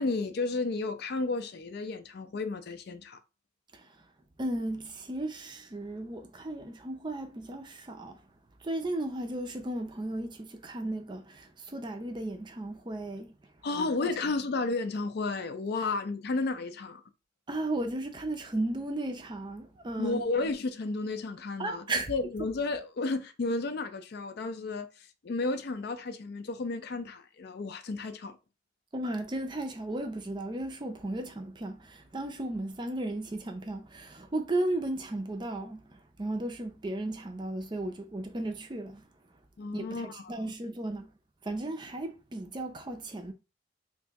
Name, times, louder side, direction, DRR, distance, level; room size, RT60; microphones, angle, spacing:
voice 1, 0.0-3.2 13.6-17.0 20.0-28.4 39.6-40.5, left 3 dB, 55° left, 0.4 m, -32 dB
voice 2, 4.4-8.2 8.6-13.3 13.8-14.1 17.5-20.2 21.6-22.1 28.9-39.0 39.7-41.1 41.4-43.3, right 1 dB, 25° right, 0.4 m, -35 dB
2.9 x 2.6 x 3.4 m
head